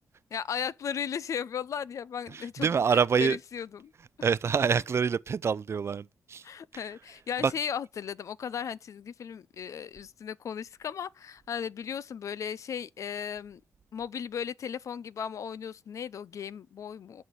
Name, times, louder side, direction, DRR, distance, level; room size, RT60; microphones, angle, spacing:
voice 1, 0.3-3.9 4.2-4.3 6.4-13.6 13.9-17.2, left 7 dB, 65° left, 0.5 m, -36 dB
voice 2, 2.3-3.4 4.2-6.4 6.7-6.8 7.4-7.5, right 6 dB, 50° right, 0.5 m, -26 dB
11.0 x 4.3 x 6.3 m
cardioid pair, 60°, 6 cm